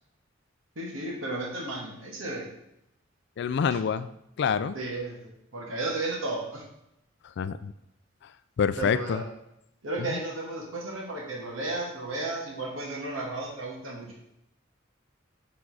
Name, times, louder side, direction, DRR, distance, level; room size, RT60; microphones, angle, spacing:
voice 1, 0.7-2.5 4.7-6.6 8.8-9.3 9.8-14.1, right 2 dB, 85° right, -2 dB, 1.6 m, -34 dB
voice 2, 3.4-4.1 4.4-4.8 7.4-7.7 8.6-9.2 10.0-10.2, left 6 dB, 60° left, 14 dB, 0.3 m, -27 dB
6.0 x 3.8 x 4.8 m, 0.82 s
head